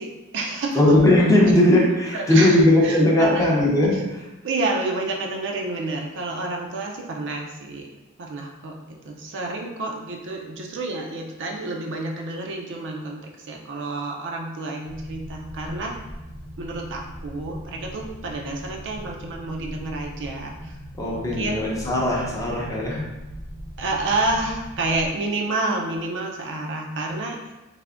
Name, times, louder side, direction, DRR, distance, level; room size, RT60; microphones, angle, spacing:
voice 1, 0.0-0.8 2.1-3.5 3.9-4.0 4.4-7.9 8.2-8.7 9.0-15.9 16.6-20.7 21.1-21.7 23.8-27.5, right 2 dB, 55° right, 1 dB, 0.4 m, -29 dB
voice 2, 0.7-4.2 21.0-23.0, left 1 dB, 15° left, -3 dB, 0.5 m, -18 dB
sound 1, 14.8-25.1, equal, 85° left, 0.8 m, -39 dB
3.4 x 2.6 x 2.4 m, 1.0 s
head